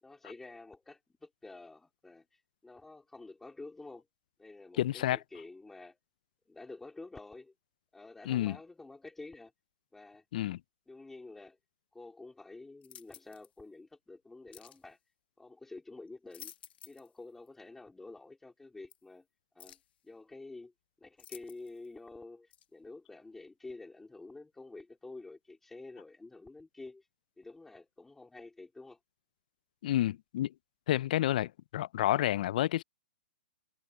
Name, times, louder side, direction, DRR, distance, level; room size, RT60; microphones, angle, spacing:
voice 1, 0.0-4.1 4.4-6.0 6.5-7.5 7.9-9.5 9.9-10.3 10.9-11.6 11.9-15.0 15.4-16.5 16.9-19.3 19.6-19.8 20.0-20.7 21.0-27.1 27.4-29.0, left 3 dB, 5° left, 3.5 m, -49 dB
voice 2, 4.8-5.2 8.3-8.6 10.3-10.6 29.8-30.5 30.9-32.8, left 13 dB, 45° left, 0.3 m, -29 dB
sound 1, 12.8-13.5 14.5-14.8 16.1-17.1 17.5-17.6 18.9-19.0 19.6-19.9 21.2-21.9 22.5-22.7, left 10 dB, 65° left, 2.1 m, -52 dB
hypercardioid pair, 160°, 6 cm